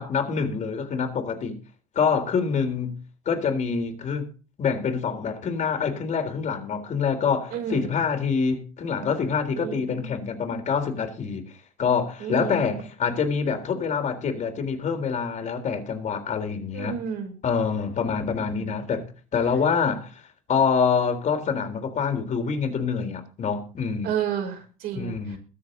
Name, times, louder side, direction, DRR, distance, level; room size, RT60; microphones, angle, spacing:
voice 1, 0.0-1.6 2.0-3.0 3.3-4.3 4.6-11.5 11.8-16.9 17.4-19.1 19.3-20.2 20.5-24.1 24.9-25.4, left 6 dB, 40° left, 3.8 m, -26 dB
voice 2, 7.5-8.0 9.6-10.1 12.2-12.8 16.7-17.3 18.5-18.8 24.0-25.4, right 8 dB, 60° right, 5.5 m, -31 dB
22.0 x 7.5 x 4.0 m
hypercardioid pair, 70°, 18 cm